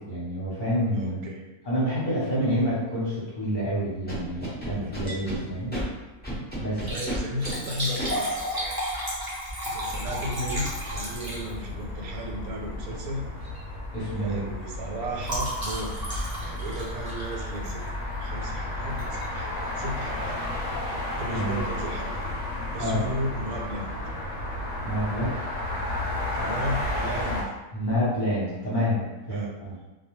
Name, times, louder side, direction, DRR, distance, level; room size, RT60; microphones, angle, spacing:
voice 1, 0.0-1.2 1.6-5.8 6.6-6.9 13.9-14.5 21.3-21.6 22.8-23.0 24.8-25.4 27.7-29.8, equal, 40° left, -9 dB, 0.9 m, -28 dB
voice 2, 0.9-1.4 2.3-2.7 4.7-5.5 6.9-8.8 9.7-13.2 14.2-17.8 18.2-20.4 21.2-22.3 22.7-23.9 26.4-27.5 29.3-29.5, equal, 75° right, -1 dB, 1.0 m, -35 dB
Scratching (performance technique), 4.1-5.4 5.7-5.8 6.2-7.5 8.0-8.1, right 1 dB, 10° left, 0.6 m, -32 dB
Liquid, 4.9-5.3 5.7-5.8 6.7-11.8 12.8-13.1 13.4-13.7 14.0-18.0 19.0-19.2 19.8-19.9 20.1-20.2, equal, 40° right, 0.3 m, -33 dB
sound 1, 9.8-27.4, left 1 dB, 65° left, 0.9 m, -33 dB
2.3 x 2.2 x 3.0 m, 1.1 s
omnidirectional pair, 1.6 m